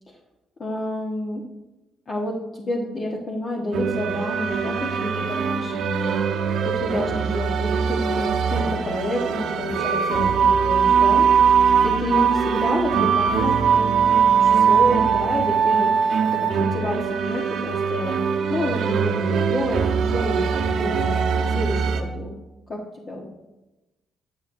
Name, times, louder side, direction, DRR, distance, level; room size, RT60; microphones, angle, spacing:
voice 1, 0.6-1.4 2.1-11.2 11.8-13.7 14.4-18.1 18.5-21.2 21.5-22.3 22.7-22.8 23.1-23.3, left 1 dB, 35° left, -2 dB, 1.3 m, -29 dB
sound 1, 3.7-22.0, right 6 dB, 65° right, 1.1 m, -21 dB
20.0 x 7.1 x 2.7 m, 1.1 s
cardioid pair, 125°, 0 cm